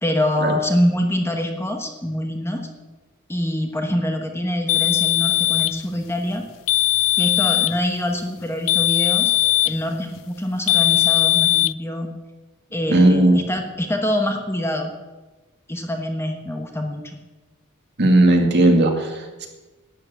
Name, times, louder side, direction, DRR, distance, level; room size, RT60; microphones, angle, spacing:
voice 1, 0.0-2.7 3.3-6.4 7.2-9.3 9.6-12.1 12.7-14.9 15.7-17.1, left 1 dB, 10° left, 3 dB, 1.1 m, -25 dB
sound 1, 4.7-5.8 6.7-7.8 8.7-9.8 10.7-11.7, left 17 dB, 65° left, 0.4 m, -19 dB
voice 2, 12.9-13.4 18.0-19.5, right 1 dB, 50° right, 3 dB, 2.1 m, -16 dB
12.0 x 7.8 x 8.5 m, 1.2 s
head